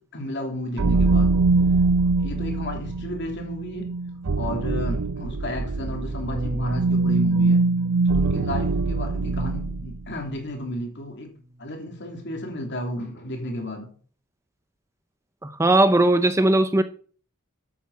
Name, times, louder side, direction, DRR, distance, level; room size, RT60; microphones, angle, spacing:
voice 1, 0.1-1.3 2.0-3.9 4.4-7.6 8.1-11.3 11.6-13.9, left 1 dB, 50° left, 2.8 m, -33 dB
sound 1, 0.8-10.0, right 3 dB, 75° right, 0.6 m, -23 dB
Bass guitar, 6.3-10.8 11.6-12.6, right 1 dB, 45° right, 1.6 m, -36 dB
voice 2, 15.4-16.8, right 2 dB, 10° right, 0.6 m, -18 dB
12.5 x 8.5 x 4.7 m
head